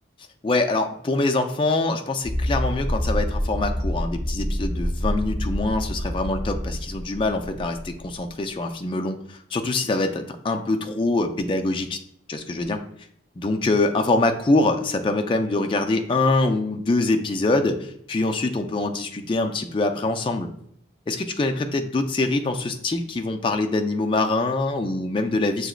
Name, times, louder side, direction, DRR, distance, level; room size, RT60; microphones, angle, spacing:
voice 1, 0.4-12.0 12.3-12.8 13.4-20.5 21.1-25.7, left 2 dB, 25° left, 5 dB, 0.3 m, -24 dB
sound 1, 2.2-8.4, equal, 45° right, 1.6 m, -27 dB
6.1 x 2.9 x 2.4 m, 0.69 s
head